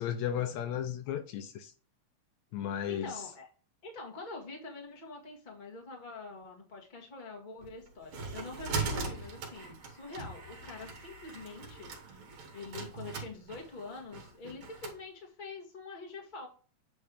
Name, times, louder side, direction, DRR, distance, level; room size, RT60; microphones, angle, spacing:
voice 1, 0.0-1.7 2.5-3.2, left 9 dB, 80° left, 1.9 m, -34 dB
voice 2, 2.9-3.5 3.8-12.2 12.5-16.5, left 3 dB, 20° left, 1.4 m, -45 dB
sound 1, 7.6-15.0, right 4 dB, 70° right, 2.6 m, -40 dB
8.7 x 3.2 x 5.0 m
omnidirectional pair, 3.3 m